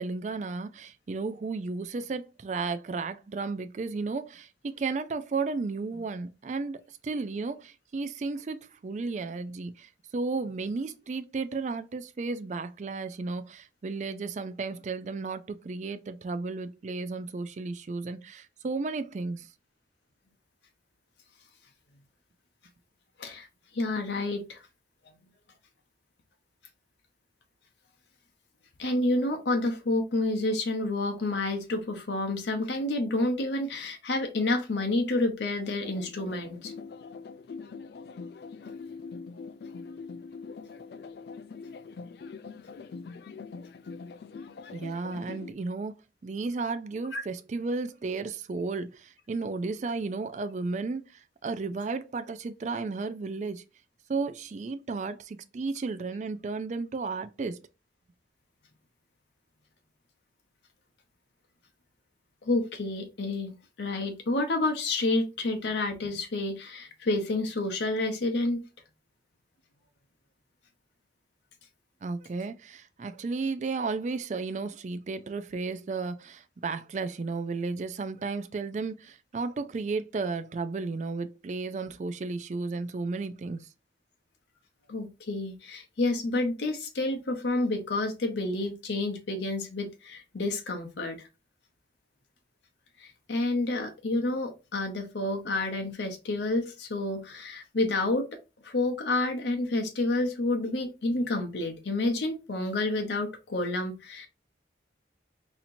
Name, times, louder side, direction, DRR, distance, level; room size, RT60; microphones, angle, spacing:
voice 1, 0.0-19.5 44.7-53.6 54.1-57.6 72.0-83.7, right 4 dB, 40° right, 0.3 m, -33 dB
voice 2, 23.7-24.6 28.8-36.7 47.1-47.2 62.4-68.6 84.9-91.3 93.0-98.3 98.6-104.3, left 2 dB, 75° left, 0.7 m, -29 dB
sound 1, 35.8-45.5, left 4 dB, 60° left, 0.3 m, -43 dB
4.2 x 2.8 x 2.6 m
head